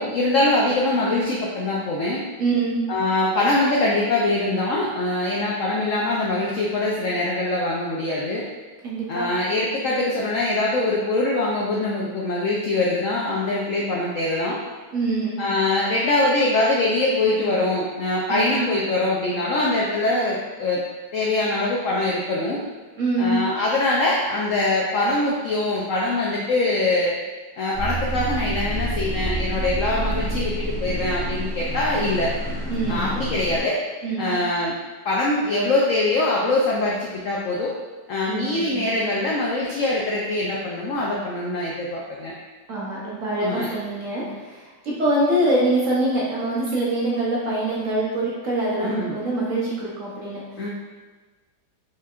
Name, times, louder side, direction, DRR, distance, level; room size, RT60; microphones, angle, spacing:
voice 1, 0.0-2.2 2.9-8.4 9.1-14.6 15.4-20.8 21.1-22.6 23.2-27.2 27.6-32.3 32.9-33.8 34.2-34.7 35.0-37.7 38.1-42.3 43.4-43.7 48.8-49.1 50.6-50.7, left 2 dB, 75° left, -3 dB, 0.7 m, -23 dB
voice 2, 2.4-2.8 8.8-9.3 14.9-15.4 18.3-18.6 23.0-23.4 32.7-33.2 34.0-34.3 38.3-38.9 42.7-50.7, right 2 dB, 55° right, -5 dB, 1.0 m, -24 dB
sound 1, 27.7-33.6, right 1 dB, 30° left, 1.2 m, -28 dB
4.5 x 3.5 x 2.4 m, 1.3 s
omnidirectional pair, 1.9 m